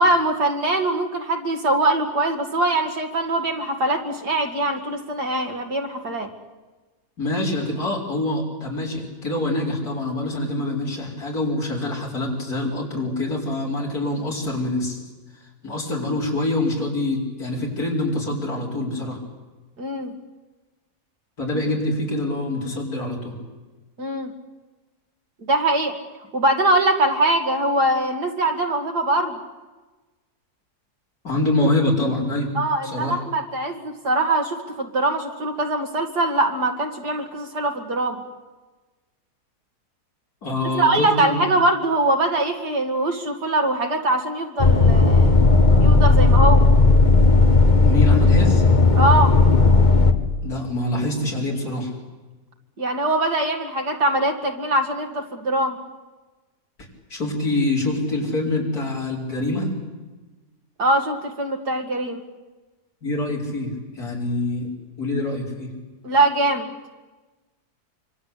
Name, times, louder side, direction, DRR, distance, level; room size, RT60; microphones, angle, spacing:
voice 1, 0.0-6.3 19.8-20.1 24.0-24.3 25.4-26.0 26.3-29.4 32.5-38.2 40.7-45.3 45.8-46.7 48.9-49.4 52.8-55.8 60.8-62.2 66.0-66.7, right 2 dB, 85° right, 4 dB, 3.0 m, -22 dB
voice 2, 7.2-15.0 15.6-19.2 21.4-23.4 31.2-32.5 32.8-33.2 40.4-41.4 47.8-48.6 50.4-51.9 57.1-59.7 63.0-64.7 65.0-65.7, left 2 dB, 70° left, -2 dB, 5.4 m, -25 dB
sound 1, 44.6-50.1, left 3 dB, 30° left, 1.5 m, -14 dB
25.5 x 25.0 x 8.4 m, 1.2 s
omnidirectional pair, 1.7 m